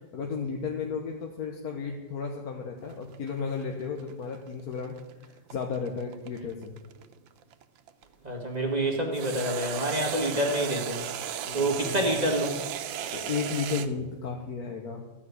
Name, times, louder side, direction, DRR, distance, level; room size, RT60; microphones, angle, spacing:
voice 1, 0.1-4.9 5.2-6.7 11.4-12.1 13.1-15.0, left 5 dB, 55° left, 2 dB, 1.5 m, -34 dB
sound 1, 2.9-8.0 9.1-13.9, right 9 dB, 85° right, 1.5 m, -36 dB
voice 2, 8.2-11.0 11.5-12.6, right 1 dB, 20° right, -1 dB, 1.8 m, -27 dB
14.0 x 5.8 x 9.5 m, 1.2 s
omnidirectional pair, 2.0 m